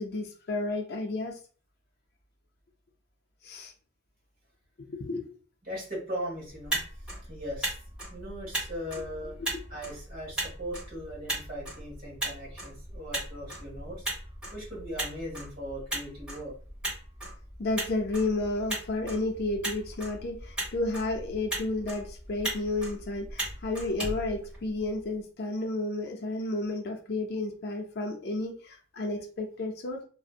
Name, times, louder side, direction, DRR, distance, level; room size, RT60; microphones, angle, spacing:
voice 1, 0.0-1.4 3.4-3.7 4.8-5.3 9.5-9.6 17.6-30.0, left 2 dB, 55° left, 3 dB, 0.5 m, -32 dB
voice 2, 5.6-6.8 7.2-7.8 8.1-9.3 9.7-14.0 14.5-16.5, equal, 50° right, -4 dB, 1.3 m, -39 dB
Motor vehicle (road), 6.5-25.0, right 1 dB, 5° right, 1.0 m, -38 dB
2.6 x 2.1 x 2.4 m, 0.41 s
head